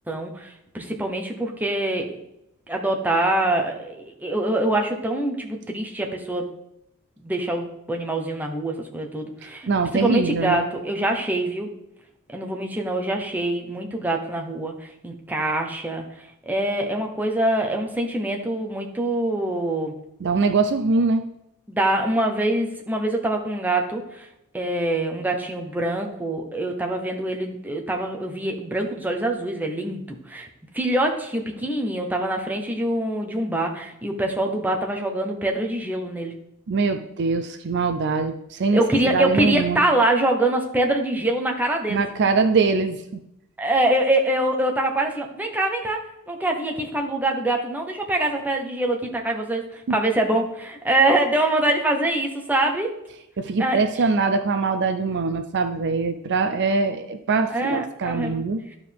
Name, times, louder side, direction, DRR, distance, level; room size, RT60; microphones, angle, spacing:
voice 1, 0.1-2.2 2.7-6.5 7.2-11.7 12.3-16.0 16.5-20.0 21.7-24.3 24.5-30.5 30.7-36.3 38.7-42.0 43.6-52.9 53.6-54.0 57.5-58.4, right 1 dB, 10° right, 1 dB, 0.9 m, -24 dB
voice 2, 9.7-10.6 20.2-21.2 36.7-38.8 39.1-39.9 41.9-43.2 49.9-50.0 53.4-58.6, right 4 dB, 50° right, 8 dB, 0.4 m, -23 dB
12.0 x 4.7 x 3.5 m, 0.82 s
head